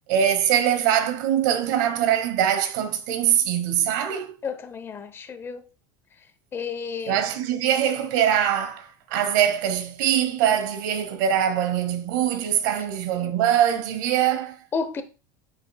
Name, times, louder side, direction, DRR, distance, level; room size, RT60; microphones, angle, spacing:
voice 1, 0.1-4.3 7.1-14.6, right 9 dB, 80° right, 1.1 m, -23 dB
voice 2, 4.4-5.6 6.5-7.2 14.7-15.0, left 5 dB, 25° left, 0.8 m, -31 dB
8.5 x 6.0 x 2.3 m
supercardioid pair, 140°, 10 cm